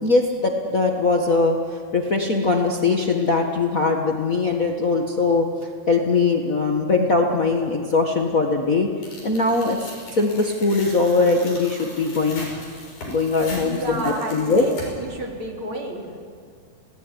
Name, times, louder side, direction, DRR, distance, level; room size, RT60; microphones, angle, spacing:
voice 1, 0.0-5.5 5.9-8.9 9.2-9.8 10.1-12.5 13.1-13.8 14.0-14.6, left 3 dB, 90° left, 2 dB, 0.7 m, -21 dB
Tearing, 9.0-15.2, left 1 dB, 55° left, 8.0 m, -39 dB
voice 2, 13.6-16.1, right 2 dB, 35° right, 0 dB, 4.0 m, -31 dB
28.0 x 18.5 x 9.9 m, 2.1 s
omnidirectional pair, 4.4 m